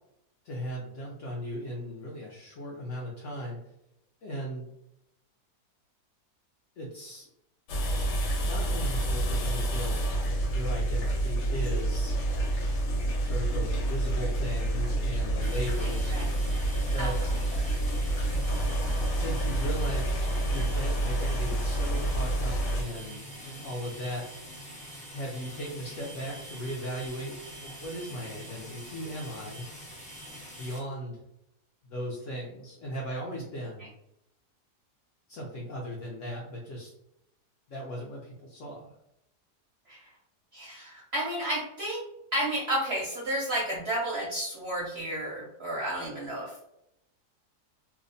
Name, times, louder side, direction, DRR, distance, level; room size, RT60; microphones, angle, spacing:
voice 1, 0.4-3.6 4.2-4.7 6.8-7.3 8.4-10.0 10.4-12.2 13.2-16.1 16.7-17.2 19.0-20.2 20.5-24.3 25.1-29.7 30.5-31.2 31.8-33.9 35.3-36.9 37.7-38.9, equal, 70° left, -3 dB, 0.7 m, -37 dB
sound 1, 7.7-22.8, right 1 dB, 90° left, 1.2 m, -28 dB
sound 2, 15.4-30.8, equal, 5° left, 0.6 m, -45 dB
voice 2, 40.5-42.0 42.3-46.5, right 1 dB, 60° right, -5 dB, 0.6 m, -31 dB
2.7 x 2.1 x 2.5 m, 0.82 s
omnidirectional pair, 1.8 m